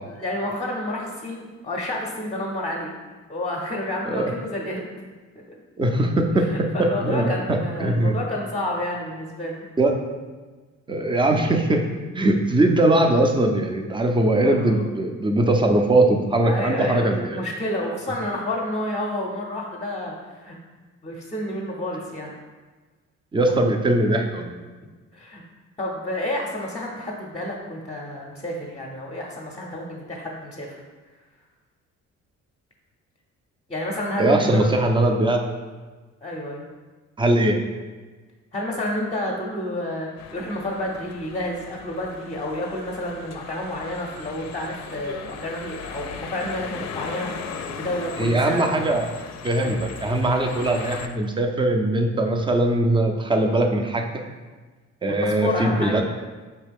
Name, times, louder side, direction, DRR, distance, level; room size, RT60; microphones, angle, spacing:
voice 1, 0.1-2.9 3.3-4.8 6.4-9.6 14.1-14.8 16.4-20.6 21.0-22.4 25.1-25.4 25.8-30.8 33.7-34.7 36.2-36.6 38.5-48.6 49.6-49.8 55.2-55.9, left 1 dB, 20° left, -3 dB, 0.7 m, -30 dB
voice 2, 5.8-6.5 6.8-8.1 9.8-9.9 10.9-11.9 12.1-17.4 23.3-24.6 34.2-35.4 37.2-37.6 48.2-49.1 49.4-54.1 55.0-56.0, right 1 dB, 15° right, 4 dB, 0.4 m, -21 dB
sound 1, 40.2-51.1, left 6 dB, 60° left, 0.5 m, -38 dB
4.5 x 3.2 x 3.4 m, 1.3 s
cardioid pair, 90°, 30 cm